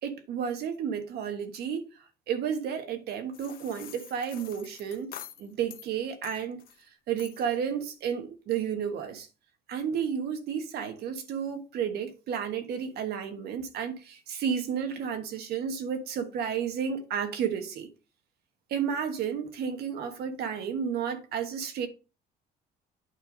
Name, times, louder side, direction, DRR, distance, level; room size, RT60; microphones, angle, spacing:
voice 1, 0.0-5.1 5.4-6.6 7.1-9.3 9.7-17.9 18.7-21.9, right 7 dB, 70° right, 1.4 m, -32 dB
sound 1, 3.3-5.9 6.2-6.8 7.2-7.6, left 10 dB, 60° left, 1.0 m, -47 dB
8.8 x 3.3 x 5.3 m
cardioid pair, 110°, 17 cm